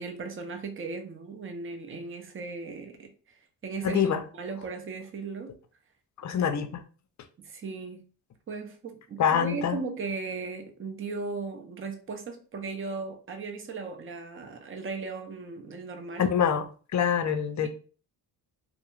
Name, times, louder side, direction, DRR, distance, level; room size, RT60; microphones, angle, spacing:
voice 1, 0.0-3.4 3.6-5.5 7.4-8.1 8.5-16.3 17.6-17.7, right 4 dB, 30° right, 4 dB, 0.6 m, -37 dB
voice 2, 3.8-4.2 6.2-6.8 9.2-9.8 16.2-16.6 16.9-17.7, left 8 dB, 40° left, 8 dB, 0.5 m, -25 dB
2.2 x 2.1 x 3.1 m, 0.40 s
supercardioid pair, 60°, 44 cm